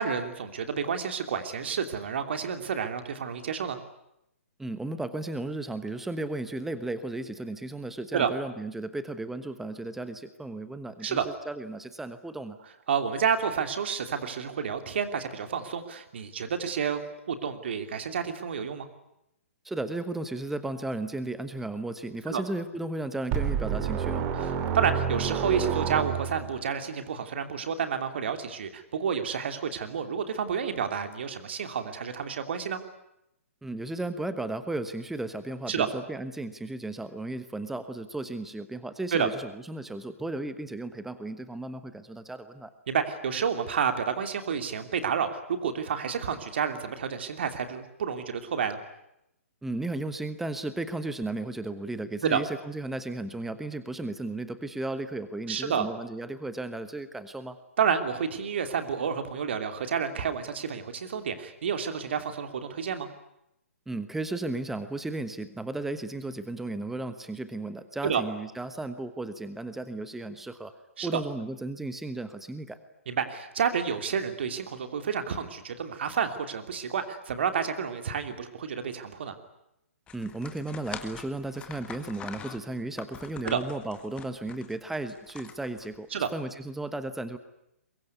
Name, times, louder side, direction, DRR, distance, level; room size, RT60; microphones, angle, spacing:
voice 1, 0.0-3.8 8.1-8.3 11.0-11.3 12.9-18.9 22.3-22.4 24.3-32.8 35.7-35.9 39.1-39.3 42.9-48.8 52.2-52.4 55.5-55.9 57.8-63.1 68.0-68.2 71.0-71.2 73.1-79.4 83.4-83.6 86.1-86.3, right 7 dB, 50° right, 7 dB, 2.9 m, -30 dB
voice 2, 4.6-11.2 11.5-12.6 19.6-24.3 33.6-42.7 49.6-57.6 63.9-70.7 71.0-72.8 80.1-87.4, right 2 dB, 5° right, 11 dB, 1.2 m, -35 dB
sound 1, 23.3-26.6, right 7 dB, 25° right, 2.7 m, -29 dB
sound 2, 80.1-86.2, left 7 dB, 15° left, 1.7 m, -44 dB
23.0 x 22.5 x 9.6 m, 0.82 s
figure-of-eight pair, 125°, 8 cm